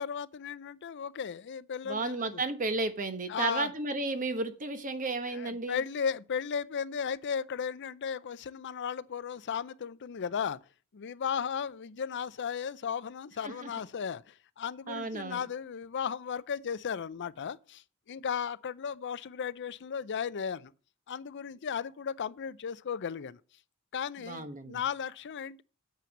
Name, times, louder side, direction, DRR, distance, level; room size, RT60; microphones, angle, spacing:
voice 1, 0.0-2.4 3.3-3.7 5.3-10.6 10.9-20.7 21.1-23.4 23.9-25.6, left 7 dB, 50° left, 0.5 m, -35 dB
voice 2, 1.8-5.8 13.4-13.7 14.9-15.4 24.2-24.8, right 3 dB, 35° right, 1.1 m, -33 dB
7.6 x 5.8 x 7.1 m
head